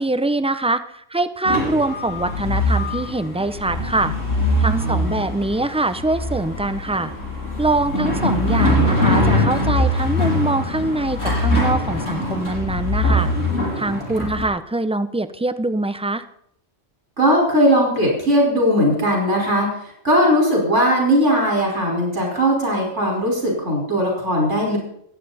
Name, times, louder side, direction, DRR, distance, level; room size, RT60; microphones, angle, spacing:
voice 1, 0.0-4.1 4.6-7.1 7.6-13.3 13.8-16.2, right 2 dB, 5° right, 11 dB, 0.7 m, -23 dB
sound 1, 1.4-14.5, left 1 dB, 85° left, 7.5 m, -22 dB
voice 2, 4.8-5.2 14.2-14.3 17.2-24.8, equal, 70° right, -1 dB, 5.6 m, -19 dB
26.5 x 10.0 x 4.4 m, 0.71 s
omnidirectional pair, 1.3 m